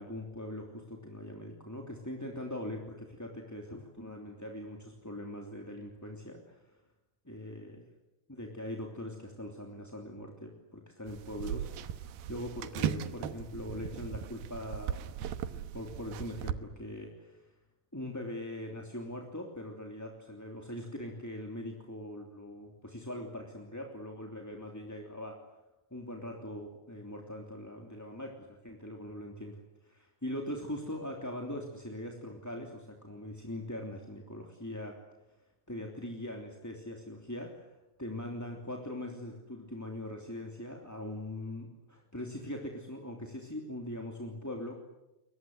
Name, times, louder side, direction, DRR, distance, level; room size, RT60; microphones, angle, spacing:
voice 1, 0.0-6.7 7.2-7.8 8.3-15.1 15.5-17.5 17.9-25.4 25.9-35.0 35.7-37.7 38.0-44.8, left 1 dB, 5° left, 1 dB, 2.4 m, -41 dB
sound 1, 11.1-16.5, right 9 dB, 85° right, 3.0 m, -38 dB
29.5 x 23.5 x 7.9 m, 0.97 s
omnidirectional pair, 4.3 m